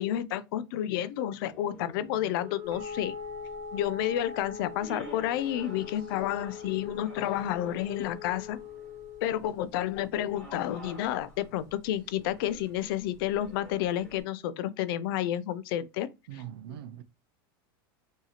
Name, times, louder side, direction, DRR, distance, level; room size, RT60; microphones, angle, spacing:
voice 1, 0.0-3.2 3.7-8.6 9.2-16.1, left 12 dB, 65° left, 0.4 m, -30 dB
sound 1, 1.5-2.8 4.8-9.1 10.3-14.2, right 1 dB, 10° left, 1.2 m, -50 dB
Wind instrument woodwind instrument, 2.3-9.4, left 12 dB, 40° right, 0.8 m, -43 dB
sound 2, 2.7-14.2, equal, 25° right, 1.2 m, -47 dB
voice 2, 16.3-17.0, right 11 dB, 80° right, 0.4 m, -41 dB
2.7 x 2.4 x 2.8 m
supercardioid pair, 120°, 12 cm